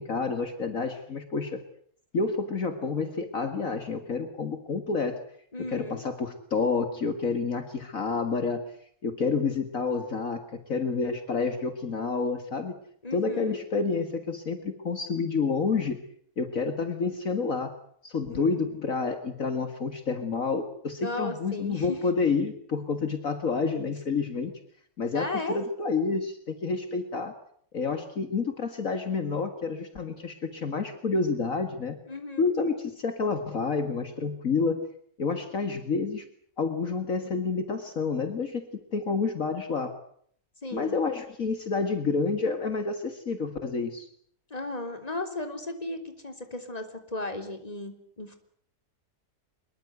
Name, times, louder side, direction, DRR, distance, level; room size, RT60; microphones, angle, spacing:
voice 1, 0.0-1.6 2.1-5.2 5.7-8.7 9.0-12.8 13.1-16.0 16.4-17.7 18.0-24.5 25.0-27.3 27.7-32.0 32.4-34.9 35.2-36.2 36.6-38.7 38.9-40.0 40.7-44.1, left 4 dB, 60° left, 8 dB, 2.3 m, -29 dB
voice 2, 5.5-6.0 13.0-13.6 18.3-18.7 21.0-22.0 25.1-25.7 32.1-32.4 40.6-41.0 44.5-48.4, left 2 dB, 25° left, 7 dB, 3.6 m, -35 dB
24.5 x 22.0 x 8.1 m, 0.63 s
omnidirectional pair, 1.6 m